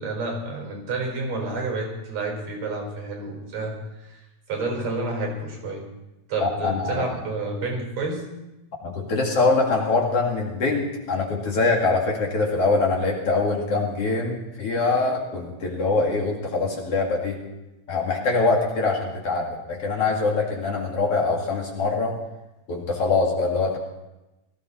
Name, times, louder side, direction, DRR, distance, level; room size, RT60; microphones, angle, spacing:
voice 1, 0.0-3.8 4.0-4.2 4.5-5.9 6.3-8.2, right 3 dB, 65° right, 1 dB, 5.8 m, -29 dB
voice 2, 6.4-7.1 8.8-17.4 17.9-22.1 22.7-23.8, left 3 dB, 55° left, -1 dB, 3.0 m, -23 dB
18.5 x 14.5 x 4.2 m, 0.99 s
omnidirectional pair, 3.4 m